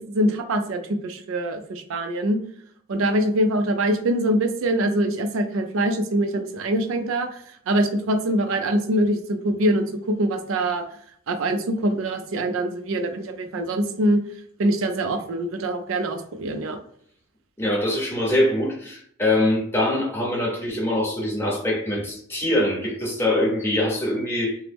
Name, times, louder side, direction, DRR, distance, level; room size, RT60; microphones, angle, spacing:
voice 1, 0.0-2.4 2.9-10.8 11.3-14.2 14.6-16.8, right 1 dB, 75° right, 6 dB, 0.4 m, -24 dB
voice 2, 17.6-24.6, left 1 dB, 10° left, -3 dB, 0.7 m, -23 dB
3.0 x 2.0 x 3.3 m, 0.64 s
head